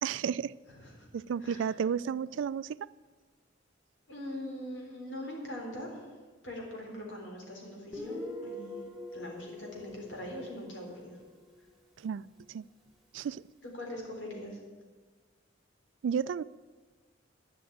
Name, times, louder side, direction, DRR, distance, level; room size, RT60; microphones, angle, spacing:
voice 1, 0.0-0.5 1.1-2.9 12.0-12.6 13.1-13.4 16.0-16.4, right 7 dB, 80° right, 0.3 m, -32 dB
voice 2, 0.7-1.1 1.4-1.7 4.1-6.1 6.4-11.2 13.6-14.6, left 1 dB, 90° left, 3.6 m, -42 dB
Guitar, 7.9-11.4, left 1 dB, ahead, 1.8 m, -43 dB
10.5 x 7.9 x 8.9 m
head